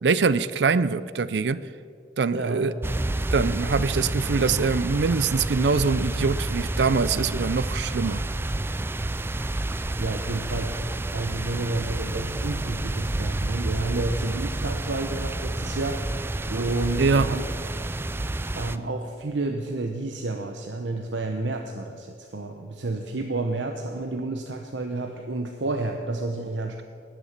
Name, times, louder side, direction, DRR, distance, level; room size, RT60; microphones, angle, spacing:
voice 1, 0.0-1.6 2.2-2.7 3.3-8.2 17.0-17.4, right 4 dB, 70° right, 16 dB, 0.5 m, -23 dB
voice 2, 2.3-2.6 9.8-10.8 11.1-16.0 16.5-17.4 17.7-17.8 18.5-26.8, right 2 dB, 90° right, 4 dB, 0.8 m, -30 dB
sound 1, 2.8-18.8, right 2 dB, 15° right, 0.3 m, -29 dB
18.5 x 6.8 x 7.3 m, 2.3 s
head